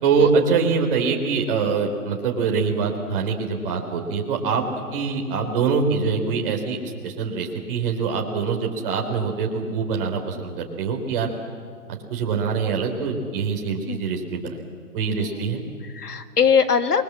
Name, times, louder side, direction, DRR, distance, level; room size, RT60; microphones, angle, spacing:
voice 1, 0.0-11.3 11.9-14.6 14.9-15.6, right 5 dB, 35° right, 2 dB, 3.5 m, -24 dB
voice 2, 15.2-17.0, left 6 dB, 80° left, 10 dB, 1.9 m, -22 dB
28.0 x 22.0 x 7.5 m, 2.1 s
figure-of-eight pair, 140°, 46 cm